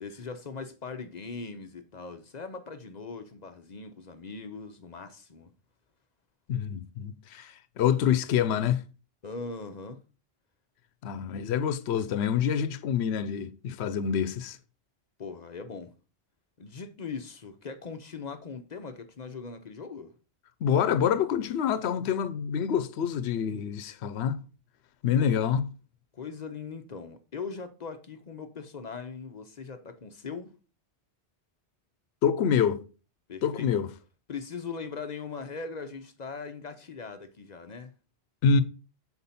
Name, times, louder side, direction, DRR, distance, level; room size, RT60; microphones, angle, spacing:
voice 1, 0.0-5.5 9.2-10.0 15.2-15.9 16.6-20.1 25.2-25.4 26.1-30.5 33.3-33.7 34.3-37.9, left 5 dB, 45° left, 0.7 m, -40 dB
voice 2, 6.5-8.8 11.0-14.6 20.6-24.4 25.0-25.7 32.2-32.8 33.4-33.9 38.4-38.6, left 7 dB, 80° left, 0.9 m, -26 dB
7.0 x 4.4 x 4.1 m
omnidirectional pair, 1.1 m